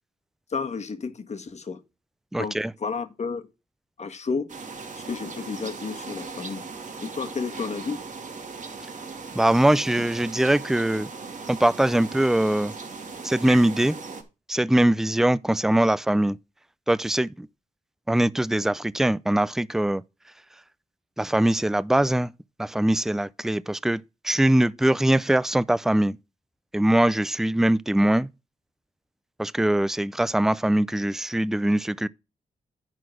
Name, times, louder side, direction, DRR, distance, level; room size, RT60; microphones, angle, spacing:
voice 1, 0.5-1.8 2.4-3.5 4.0-4.5 5.0-6.7 7.0-8.0, left 5 dB, 50° left, 1.4 m, -31 dB
voice 2, 2.3-2.7 9.4-11.1 11.5-12.7 13.2-14.0 14.5-16.4 16.9-17.5 18.1-20.0 21.2-22.3 22.6-26.2 26.7-28.3 29.4-32.1, right 1 dB, 5° right, 0.4 m, -22 dB
sound 1, 4.5-14.2, right 4 dB, 55° right, 2.4 m, -38 dB
10.5 x 4.0 x 6.3 m
cardioid pair, 70°, 15 cm